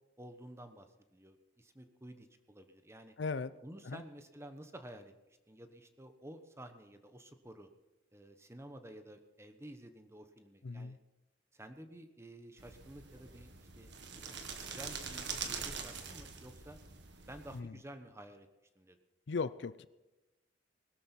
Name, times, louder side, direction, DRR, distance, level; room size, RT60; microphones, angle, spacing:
voice 1, 0.2-3.1 3.6-5.1 5.5-7.7 8.1-11.0 11.5-16.8 17.3-18.5 18.7-19.0, right 1 dB, 15° right, 8 dB, 1.2 m, -52 dB
voice 2, 3.2-3.5 3.8-4.0 10.6-11.0 17.5-17.7 19.3-19.9, left 4 dB, 65° left, 16 dB, 0.5 m, -37 dB
sound 1, 12.6-17.6, right 6 dB, 65° right, 1.8 m, -44 dB
20.5 x 13.0 x 4.5 m, 1.0 s
head